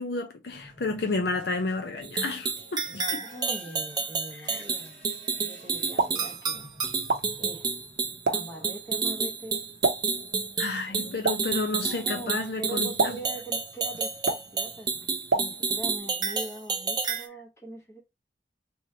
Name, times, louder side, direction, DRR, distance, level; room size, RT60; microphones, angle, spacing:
voice 1, 0.0-3.2 4.4-4.6 10.6-13.2, left 3 dB, 65° left, 0.6 m, -31 dB
sound 1, 0.5-8.8, left 1 dB, 40° left, 1.7 m, -53 dB
sound 2, 2.0-17.2, right 5 dB, 25° right, 0.5 m, -30 dB
voice 2, 2.9-5.0 5.3-6.7 7.4-7.7 8.3-9.6 10.9-11.2 11.7-14.9 15.3-18.0, right 1 dB, 15° left, 1.0 m, -41 dB
Explosion, 5.7-16.0, right 3 dB, 80° right, 0.6 m, -34 dB
3.6 x 3.0 x 2.7 m
head